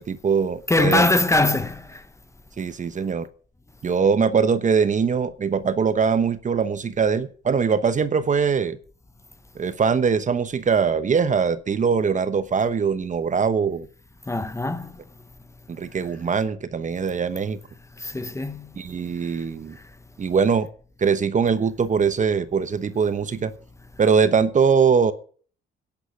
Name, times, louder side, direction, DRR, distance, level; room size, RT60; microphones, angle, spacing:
voice 1, 0.0-1.1 2.6-3.3 3.8-8.8 9.6-13.9 15.7-17.6 18.8-19.8 20.2-20.7 21.0-23.5 24.0-25.1, right 6 dB, 40° right, 1.0 m, -22 dB
voice 2, 0.7-2.0 14.3-14.9 18.0-18.7, left 2 dB, 15° left, 1.1 m, -22 dB
10.5 x 10.0 x 5.9 m
cardioid pair, 90°, 20 cm